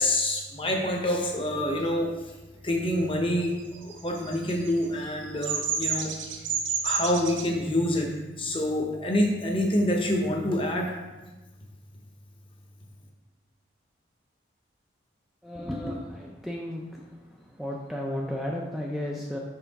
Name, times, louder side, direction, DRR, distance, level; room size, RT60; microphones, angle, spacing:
voice 1, 0.0-2.1 2.6-6.1 6.8-8.1 8.4-10.9, left 1 dB, 25° left, 1 dB, 0.9 m, -26 dB
Bird vocalization bird call bird song, 3.7-7.5, right 6 dB, 75° right, 0.8 m, -30 dB
voice 2, 15.4-17.0 17.6-19.4, left 1 dB, ahead, -2 dB, 0.4 m, -33 dB
5.7 x 5.7 x 4.0 m, 1.1 s
head